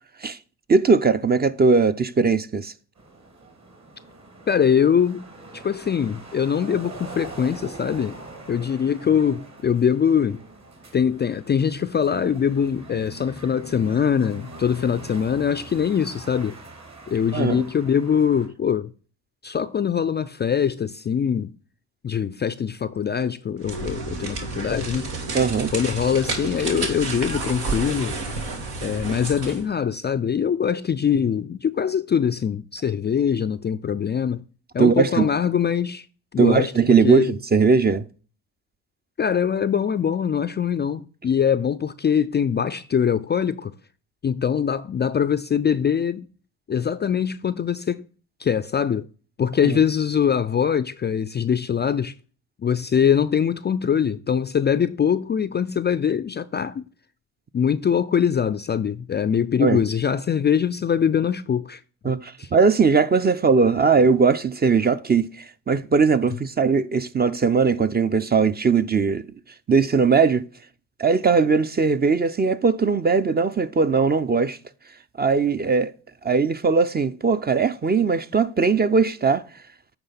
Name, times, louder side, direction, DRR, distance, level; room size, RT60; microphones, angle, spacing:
voice 1, 0.7-2.7 17.3-17.6 25.3-25.7 34.8-35.3 36.4-38.0 49.6-49.8 59.6-59.8 62.0-69.2 69.7-70.5 71.0-74.6 75.2-75.9 76.2-79.4, right 5 dB, 25° right, 0.6 m, -19 dB
sound 1, 3.0-18.5, right 2 dB, 45° right, 2.8 m, -43 dB
voice 2, 4.5-5.3 5.5-8.2 8.5-10.4 10.9-16.6 17.1-18.9 19.4-21.5 22.0-25.1 25.7-28.2 28.8-34.4 34.7-36.1 36.3-36.7 37.0-37.3 39.2-43.7 44.2-46.3 46.7-48.0 48.4-49.1 49.4-52.1 52.6-56.8 57.5-61.8 62.4-62.5, left 7 dB, 25° left, 0.4 m, -23 dB
sound 2, 23.6-29.7, right 3 dB, 80° right, 1.8 m, -30 dB
8.8 x 3.4 x 5.7 m
hypercardioid pair, 55°, 39 cm